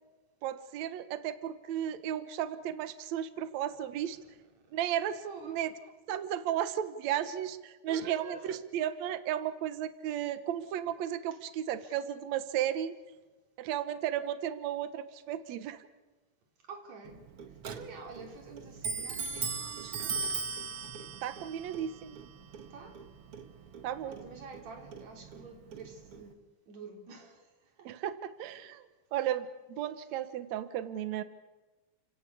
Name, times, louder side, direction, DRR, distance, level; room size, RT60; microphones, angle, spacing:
voice 1, 0.4-4.2 4.7-5.7 6.1-13.0 13.6-15.9 21.2-22.2 23.8-24.2 27.8-28.8 29.1-31.2, right 10 dB, 85° right, 1.5 m, -34 dB
voice 2, 5.2-5.6 7.9-8.5 11.8-11.9 16.6-17.2 17.7-20.4 22.7-23.0 24.0-27.9, right 4 dB, 45° right, 4.0 m, -48 dB
Clock, 17.0-26.3, right 4 dB, 65° right, 1.4 m, -40 dB
30.0 x 16.5 x 8.4 m
omnidirectional pair, 4.8 m